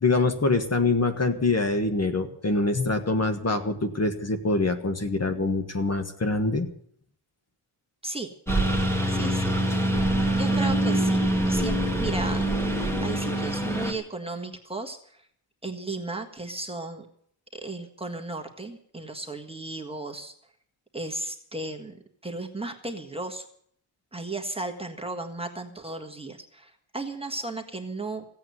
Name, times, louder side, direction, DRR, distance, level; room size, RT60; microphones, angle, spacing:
voice 1, 0.0-6.7, left 3 dB, 30° left, 7 dB, 1.6 m, -25 dB
Engine, 8.5-13.9, right 1 dB, 5° left, 2.1 m, -24 dB
voice 2, 9.1-9.6 9.9-11.2 11.5-12.4 13.0-15.3 15.6-17.0 17.5-20.3 20.9-23.5 24.1-28.3, right 2 dB, 10° right, 3 dB, 1.6 m, -35 dB
16.0 x 8.8 x 9.5 m, 0.64 s
wide cardioid pair, 155°, 50 cm